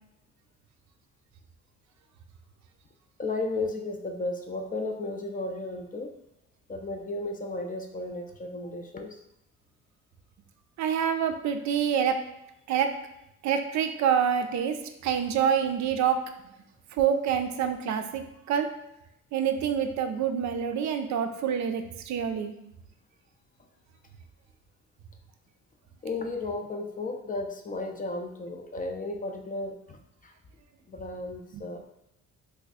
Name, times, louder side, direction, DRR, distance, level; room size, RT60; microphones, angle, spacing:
voice 1, 3.2-6.1 6.7-9.2 26.0-30.3 30.9-31.8, left 2 dB, 30° left, 4 dB, 0.4 m, -34 dB
voice 2, 10.8-12.2 12.7-12.9 13.4-14.8 15.0-16.2 17.0-18.7 19.3-22.5 31.5-31.6, right 8 dB, 65° right, 7 dB, 0.4 m, -26 dB
2.5 x 2.4 x 4.1 m, 0.83 s
cardioid pair, 90°, 30 cm